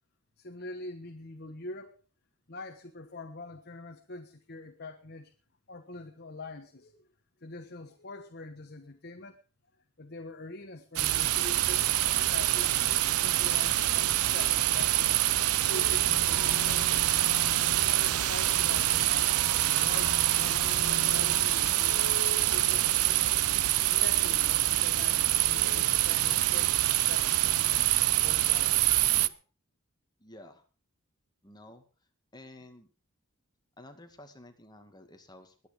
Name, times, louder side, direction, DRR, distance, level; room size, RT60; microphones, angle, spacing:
voice 1, 0.4-2.0 2.5-5.3 5.7-7.1 7.4-9.4 10.0-12.8 13.2-22.0 22.4-23.4 23.7-27.9 28.2-28.7 29.2-29.4, left 2 dB, 45° left, 6 dB, 1.3 m, -45 dB
sound 1, 11.0-29.3, right 14 dB, 85° right, 0.7 m, -26 dB
sound 2, 15.7-26.4, left 2 dB, 75° left, 2.3 m, -43 dB
voice 2, 30.2-30.6 31.4-31.8 32.3-32.9 33.8-35.7, left 1 dB, 20° left, 6 dB, 2.1 m, -51 dB
21.5 x 9.3 x 5.0 m, 0.36 s
head